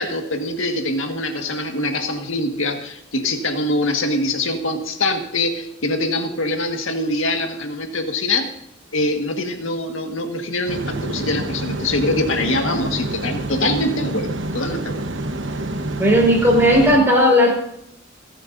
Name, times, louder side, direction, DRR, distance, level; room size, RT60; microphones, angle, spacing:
voice 1, 0.0-8.5 8.9-15.0, left 2 dB, 85° left, 4 dB, 1.7 m, -24 dB
sound 1, 10.7-17.0, right 1 dB, 70° right, 1.1 m, -27 dB
voice 2, 16.0-17.5, equal, 10° right, -2 dB, 5.1 m, -14 dB
28.5 x 10.0 x 2.7 m, 0.75 s
head